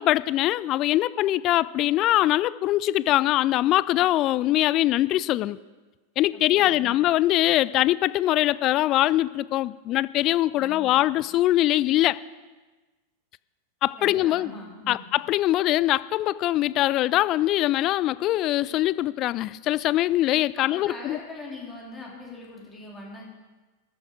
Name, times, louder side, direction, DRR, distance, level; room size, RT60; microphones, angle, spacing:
voice 1, 0.0-5.6 6.2-12.2 13.8-14.5 14.9-21.2, left 15 dB, 35° left, 19 dB, 0.3 m, -22 dB
voice 2, 6.3-7.0 10.5-11.1 14.0-15.1 20.6-23.3, left 2 dB, 15° left, -3 dB, 3.5 m, -42 dB
13.5 x 9.9 x 5.0 m, 1.2 s
figure-of-eight pair, 90°, 0 cm